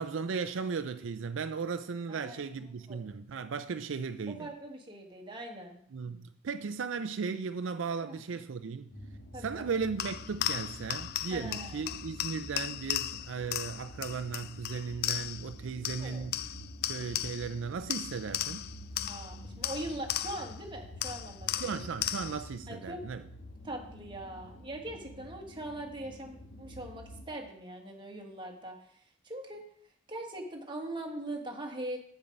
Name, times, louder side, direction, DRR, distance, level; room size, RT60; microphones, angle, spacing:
voice 1, 0.0-4.5 5.9-8.9 9.4-16.4 16.8-18.6 21.5-23.2, right 5 dB, 75° right, 0.4 m, -36 dB
voice 2, 2.1-3.0 4.3-5.8 8.1-8.2 9.3-9.7 11.3-12.0 16.0-16.2 19.1-21.8 22.7-23.0 23.6-28.8 29.2-29.6 30.1-32.0, right 1 dB, 25° right, 1.5 m, -41 dB
sound 1, 8.9-27.2, equal, 75° left, 1.5 m, -48 dB
sound 2, 10.0-15.5 15.8-17.6 17.9-20.6 21.0-22.5, left 13 dB, 55° left, 0.3 m, -36 dB
8.1 x 7.1 x 5.2 m
head